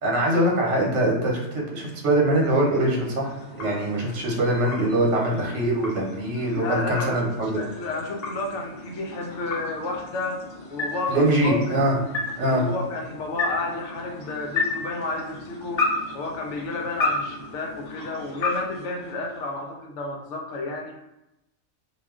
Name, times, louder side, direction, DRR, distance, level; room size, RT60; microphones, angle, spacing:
voice 1, 0.0-7.6 11.1-11.9 12.4-12.6, right 1 dB, 70° right, -2 dB, 1.1 m, -23 dB
sound 1, 2.0-19.7, left 3 dB, 55° left, 0.4 m, -33 dB
voice 2, 6.4-10.4 10.7-12.1 12.5-21.0, left 3 dB, 75° left, 2 dB, 0.9 m, -31 dB
2.4 x 2.2 x 3.5 m, 0.91 s
omnidirectional pair, 1.3 m